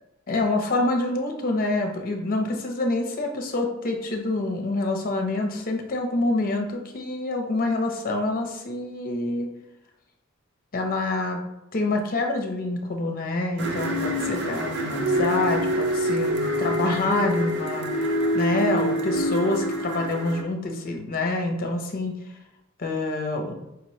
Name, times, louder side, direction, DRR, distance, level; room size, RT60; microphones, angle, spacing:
voice 1, 0.3-9.5 10.7-11.4 11.7-22.1 22.8-23.5, left 2 dB, 45° left, 3 dB, 0.7 m, -26 dB
sound 1, 13.6-20.4, equal, 55° right, 0.7 m, -26 dB
5.0 x 3.0 x 3.0 m, 0.91 s
head